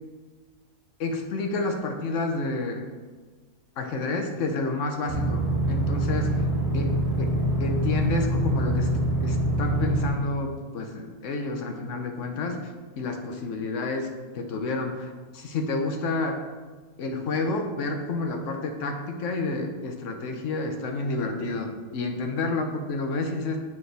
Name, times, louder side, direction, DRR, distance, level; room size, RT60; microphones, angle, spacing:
voice 1, 1.0-2.8 3.8-6.4 6.7-7.3 7.6-8.9 9.2-14.1 14.3-16.4 17.0-23.6, left 3 dB, 60° left, 4 dB, 1.0 m, -29 dB
sound 1, 5.1-10.1, right 1 dB, 25° left, 1.1 m, -25 dB
7.0 x 4.4 x 3.3 m, 1.4 s
omnidirectional pair, 1.7 m